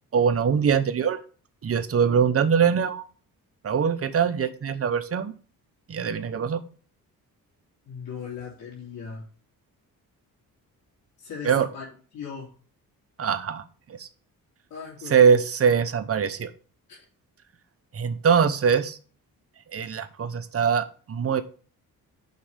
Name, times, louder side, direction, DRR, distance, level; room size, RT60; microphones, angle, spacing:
voice 1, 0.1-1.2 1.6-3.0 3.6-5.4 5.9-6.6 11.4-11.7 13.2-13.6 14.0-14.1 15.1-16.5 17.9-19.0 19.7-21.4, right 7 dB, 40° right, 11 dB, 0.8 m, -22 dB
voice 2, 7.8-9.2 11.2-11.9 12.1-12.5 14.7-15.4 16.9-17.0, left 6 dB, 80° left, -3 dB, 3.2 m, -38 dB
6.4 x 5.3 x 3.4 m, 0.40 s
cardioid pair, 100°, 36 cm